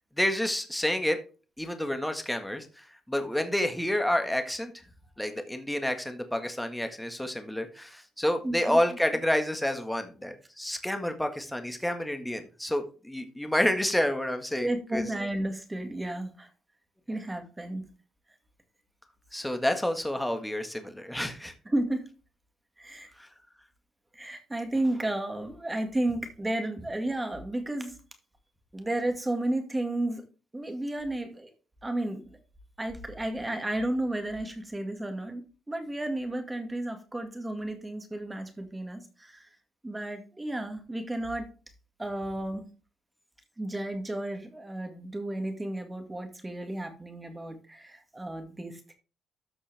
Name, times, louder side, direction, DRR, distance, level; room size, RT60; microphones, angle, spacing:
voice 1, 0.2-1.2 1.6-4.7 5.2-15.0 19.3-21.5 23.2-23.3, left 1 dB, 5° left, 6 dB, 1.7 m, -29 dB
voice 2, 8.4-8.8 14.6-16.5 17.1-17.9 21.7-22.1 22.8-23.1 24.1-28.0 28.7-30.2 30.5-31.5 31.8-32.4 32.8-39.5 39.8-41.5 42.0-42.7 43.6-48.9, right 1 dB, 15° right, 6 dB, 2.0 m, -32 dB
13.5 x 4.5 x 3.5 m, 0.35 s
cardioid pair, 90°, 0 cm